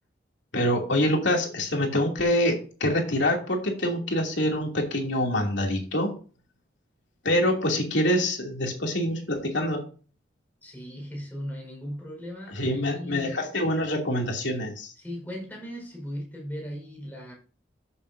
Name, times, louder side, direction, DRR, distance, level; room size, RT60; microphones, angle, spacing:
voice 1, 0.5-6.1 7.2-9.8 12.5-14.9, left 1 dB, 75° left, 2.8 m, -25 dB
voice 2, 10.6-13.4 15.0-17.3, equal, 10° left, 4.8 m, -37 dB
14.0 x 7.1 x 2.7 m
head